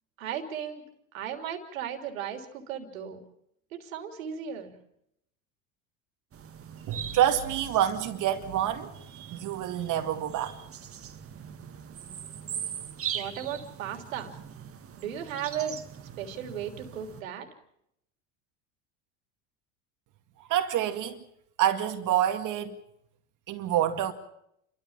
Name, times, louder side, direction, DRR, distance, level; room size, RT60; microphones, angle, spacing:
voice 1, 0.2-0.8 1.1-3.2 3.7-4.7 13.1-14.4 15.0-15.8 16.2-17.5, right 9 dB, 85° right, 3.3 m, -36 dB
sound 1, 6.3-17.2, right 8 dB, 35° right, 2.0 m, -41 dB
voice 2, 6.9-10.7 20.4-21.2 21.6-22.8 23.5-24.1, right 11 dB, 50° right, 2.1 m, -27 dB
29.5 x 14.0 x 7.3 m
supercardioid pair, 95°, 39 cm